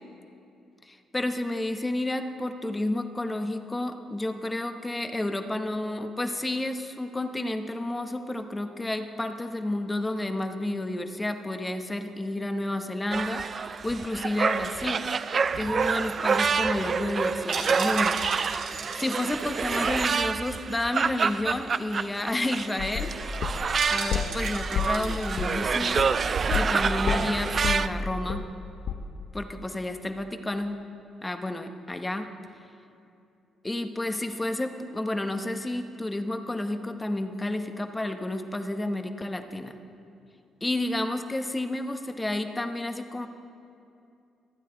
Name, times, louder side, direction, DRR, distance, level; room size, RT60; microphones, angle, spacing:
voice 1, 0.8-15.1 15.5-18.2 18.5-23.1 23.9-26.1 26.5-28.5 29.3-30.8 31.2-32.3 33.6-39.8 40.6-43.3, left 1 dB, 15° left, 7 dB, 1.0 m, -31 dB
sound 1, 13.1-27.9, right 5 dB, 45° right, 0.4 m, -28 dB
sound 2, 15.4-20.7 21.0-21.1 21.4-21.6 22.0-22.1 22.3-22.7 23.8-25.5 25.8-26.0, right 4 dB, 85° right, 3.3 m, -39 dB
sound 3, 22.8-24.4 24.7-26.8 27.1-28.6 28.9-29.0, left 7 dB, 70° left, 0.8 m, -30 dB
24.5 x 9.1 x 3.9 m, 2.6 s
cardioid pair, 90°, 0 cm